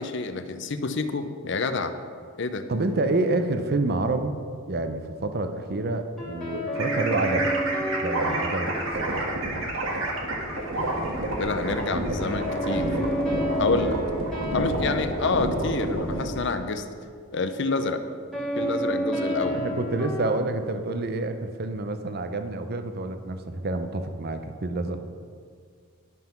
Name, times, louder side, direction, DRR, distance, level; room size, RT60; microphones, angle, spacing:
voice 1, 0.0-1.9 2.4-2.7 11.4-13.0 13.6-14.0 14.5-16.8 17.3-18.0 18.6-19.7, left 3 dB, 55° left, 9 dB, 0.6 m, -28 dB
voice 2, 2.7-4.4 4.7-7.5 8.0-8.7 9.0-9.3 19.5-25.0, right 2 dB, 50° right, 8 dB, 0.6 m, -28 dB
sound 1, 6.2-9.5 12.2-16.1 18.3-20.3, equal, 5° left, 2.0 m, -30 dB
sound 2, 6.8-16.3, right 1 dB, 70° right, 1.6 m, -29 dB
10.5 x 5.7 x 5.9 m, 2.1 s
head